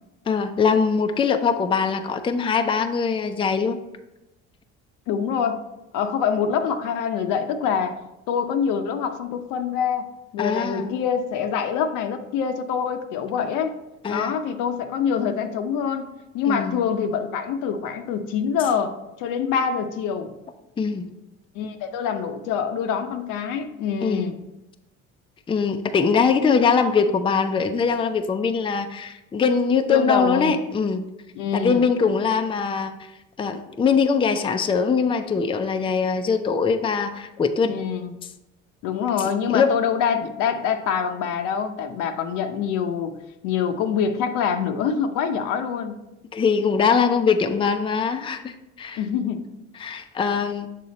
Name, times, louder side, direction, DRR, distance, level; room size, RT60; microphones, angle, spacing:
voice 1, 0.3-3.8 10.4-10.9 14.0-14.4 16.5-16.8 20.8-21.1 24.0-24.3 25.5-31.1 31.5-33.1 33.4-37.8 39.2-39.7 46.3-49.0 49.8-50.7, left 5 dB, 15° left, 7 dB, 0.4 m, -22 dB
voice 2, 5.1-5.6 5.9-8.0 8.3-13.7 14.1-16.1 16.3-20.3 21.5-24.4 29.9-30.5 31.3-31.8 37.6-38.1 38.8-43.2 43.4-46.0 49.0-49.5, left 7 dB, 75° left, 7 dB, 0.7 m, -25 dB
6.7 x 3.8 x 4.1 m, 0.95 s
supercardioid pair, 90°, 32 cm